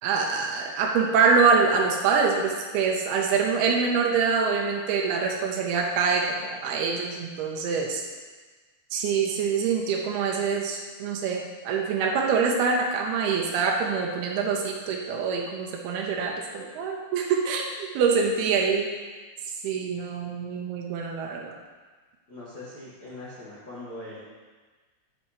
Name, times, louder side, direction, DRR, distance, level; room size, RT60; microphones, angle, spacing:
voice 1, 0.0-8.0 8.9-18.9 19.6-21.5, right 5 dB, 80° right, 0 dB, 2.6 m, -25 dB
voice 2, 18.1-18.5 22.3-24.2, left 1 dB, 55° left, -10 dB, 1.0 m, -41 dB
9.8 x 5.8 x 4.3 m, 1.4 s
omnidirectional pair, 4.8 m